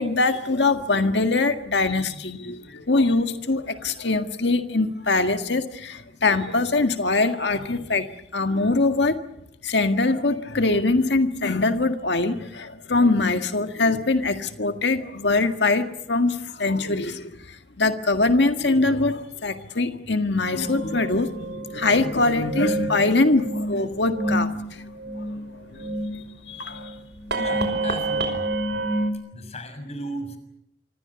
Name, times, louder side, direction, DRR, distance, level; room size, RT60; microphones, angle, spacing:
voice 1, 0.0-8.1 8.3-9.2 9.6-24.8 25.1-25.3 25.7-27.0, left 3 dB, 80° left, 7 dB, 1.8 m, -23 dB
sound 1, 20.5-29.1, right 2 dB, 80° right, 5.3 m, -29 dB
voice 2, 27.3-28.5 29.3-30.4, equal, 40° left, 8 dB, 6.2 m, -35 dB
27.5 x 25.0 x 7.0 m, 0.79 s
head